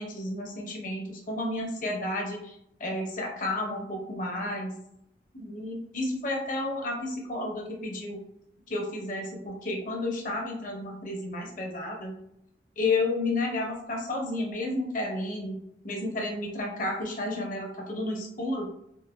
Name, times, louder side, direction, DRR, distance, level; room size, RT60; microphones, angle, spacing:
voice 1, 0.0-4.8 5.3-8.2 8.7-12.1 12.8-15.6 15.8-18.7, left 2 dB, 45° left, 0 dB, 0.7 m, -31 dB
3.8 x 2.4 x 2.2 m, 0.77 s
head